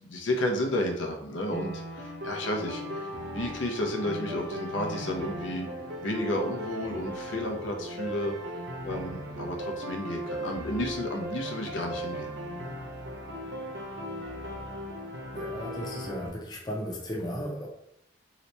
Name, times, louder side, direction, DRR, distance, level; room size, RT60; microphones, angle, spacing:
voice 1, 0.0-3.1 3.3-5.7 6.0-8.3 8.8-12.3, left 1 dB, 85° left, 3 dB, 0.6 m, -32 dB
sound 1, 1.5-16.3, equal, 60° right, 0.6 m, -37 dB
voice 2, 15.3-17.7, equal, 20° left, -1 dB, 0.5 m, -35 dB
2.9 x 2.1 x 4.0 m, 0.75 s
head